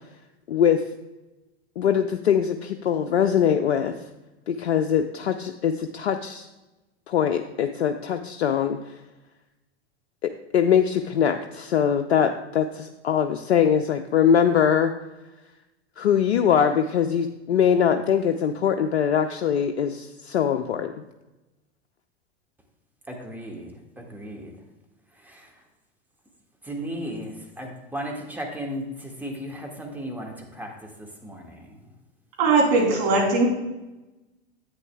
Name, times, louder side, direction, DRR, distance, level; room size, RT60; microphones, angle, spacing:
voice 1, 0.5-0.8 1.8-4.0 4.5-6.5 7.1-8.8 10.2-14.9 16.0-20.9, left 8 dB, 70° left, 7 dB, 0.5 m, -22 dB
voice 2, 23.1-24.5 25.2-25.5 26.6-31.8, equal, 5° right, 1 dB, 1.4 m, -36 dB
voice 3, 32.4-33.5, right 3 dB, 50° right, -1 dB, 3.0 m, -19 dB
10.5 x 8.5 x 2.2 m, 1.0 s
figure-of-eight pair, 90°, 34 cm